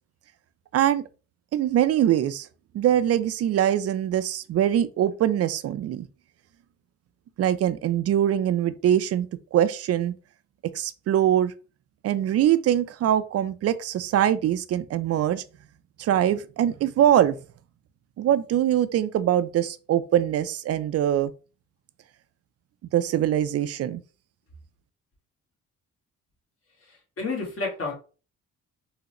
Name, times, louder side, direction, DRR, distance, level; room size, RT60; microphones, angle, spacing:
voice 1, 0.7-1.0 1.5-2.5 2.7-6.1 7.4-10.1 10.7-11.5 12.0-15.4 16.0-17.4 18.2-21.3 22.9-24.0, right 11 dB, 55° right, 0.4 m, -23 dB
voice 2, 26.8-27.9, left 3 dB, 50° left, 1.6 m, -31 dB
3.7 x 2.1 x 3.0 m
cardioid pair, 90°, 30 cm